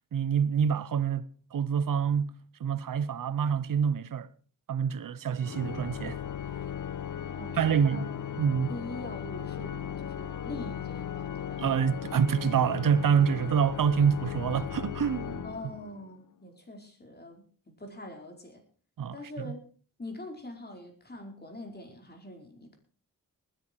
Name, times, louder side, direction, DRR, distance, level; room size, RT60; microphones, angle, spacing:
voice 1, 0.1-2.3 2.6-4.3 4.7-6.2 7.5-8.1 8.4-8.7 11.6-15.4 19.0-19.2 19.4-19.5, right 7 dB, 85° right, 0.9 m, -26 dB
Organ, 5.4-16.2, left 9 dB, 70° left, 0.9 m, -37 dB
voice 2, 7.3-8.4 8.7-11.7 15.4-18.6 19.1-19.7 20.0-22.8, left 1 dB, 30° left, 5.0 m, -44 dB
20.0 x 10.5 x 4.7 m
cardioid pair, 80°, 32 cm